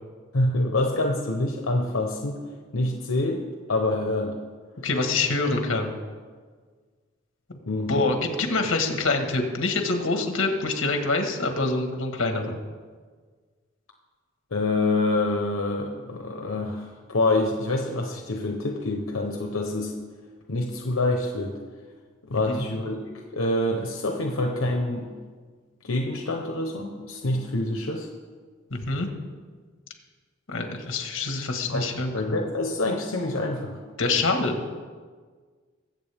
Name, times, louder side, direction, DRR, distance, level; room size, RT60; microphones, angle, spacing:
voice 1, 0.3-2.4 2.7-4.4 7.6-8.1 14.5-19.9 20.5-21.6 22.2-25.1 25.8-28.1 30.5-30.6 31.7-31.9 32.1-33.8, left 2 dB, 90° left, 2 dB, 1.0 m, -26 dB
voice 2, 4.8-6.0 7.5-7.6 7.9-12.6 22.5-22.6 28.7-29.1 30.5-32.1 34.0-34.6, left 3 dB, 70° left, 4 dB, 1.6 m, -25 dB
21.0 x 7.9 x 3.5 m, 1.5 s
head